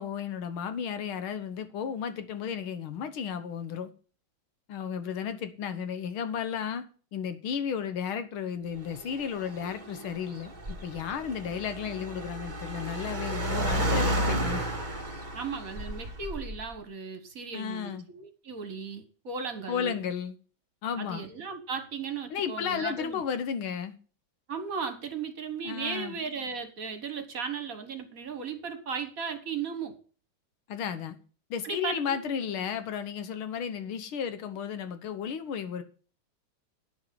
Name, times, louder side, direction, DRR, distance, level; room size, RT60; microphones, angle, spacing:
voice 1, 0.0-3.9 4.7-6.8 7.1-14.7 17.5-18.1 19.7-20.4 20.8-21.3 22.3-24.0 25.6-26.2 30.7-31.2 31.5-35.8, left 7 dB, 85° left, 2.0 m, -33 dB
Car, 8.8-16.7, right 1 dB, 25° right, 1.6 m, -32 dB
voice 2, 15.3-19.9 20.9-23.2 24.5-30.0 31.6-32.2, right 5 dB, 45° right, 1.6 m, -36 dB
9.5 x 6.3 x 7.6 m
omnidirectional pair, 2.2 m